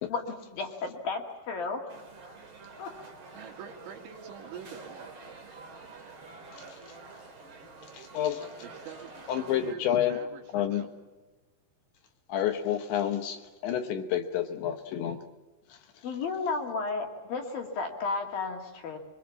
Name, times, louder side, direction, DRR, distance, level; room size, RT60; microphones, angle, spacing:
voice 1, 0.1-1.8 2.2-2.4 2.8-2.9 16.0-19.0, left 4 dB, 55° left, 3 dB, 3.4 m, -33 dB
sound 1, 1.9-9.8, right 3 dB, 35° right, 2.2 m, -48 dB
voice 2, 3.3-5.5 8.6-11.0, right 7 dB, 70° right, 3 dB, 4.4 m, -46 dB
voice 3, 7.9-8.5 9.3-10.2 10.5-10.9 12.3-15.2 15.7-15.8, left 10 dB, 70° left, 6 dB, 3.1 m, -29 dB
24.0 x 24.0 x 7.2 m, 1.2 s
omnidirectional pair, 5.9 m